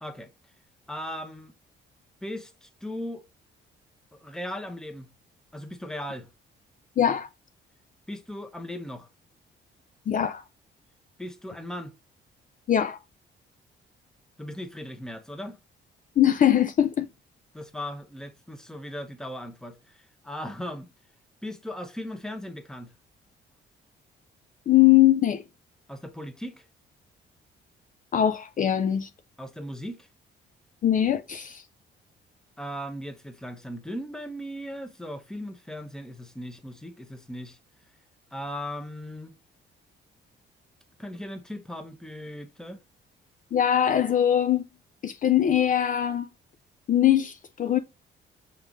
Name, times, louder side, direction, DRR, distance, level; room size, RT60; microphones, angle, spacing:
voice 1, 0.9-1.5 2.2-3.2 4.1-5.1 5.5-6.3 8.1-9.1 11.2-11.9 14.4-15.6 17.5-20.9 21.4-22.9 25.9-26.6 29.4-30.1 32.6-37.6 38.3-39.3 41.0-42.8, equal, 5° left, 0.9 m, -38 dB
voice 2, 7.0-7.3 10.1-10.4 12.7-13.0 16.2-17.1 24.7-25.4 28.1-29.1 30.8-31.6 43.5-44.6 45.0-46.3 46.9-47.8, left 11 dB, 45° left, 0.4 m, -21 dB
5.5 x 3.6 x 2.5 m
cardioid pair, 90°, 20 cm